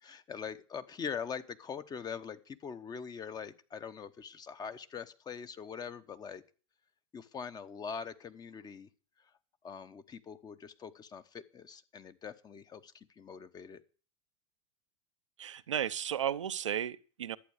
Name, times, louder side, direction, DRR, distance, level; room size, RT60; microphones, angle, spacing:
voice 1, 0.0-6.4 7.1-8.9 9.2-9.3 9.6-13.8, left 6 dB, 25° left, 1.0 m, -43 dB
voice 2, 15.4-17.4, right 10 dB, 90° right, 0.6 m, -34 dB
11.5 x 8.4 x 6.5 m
hypercardioid pair, 100°, 15 cm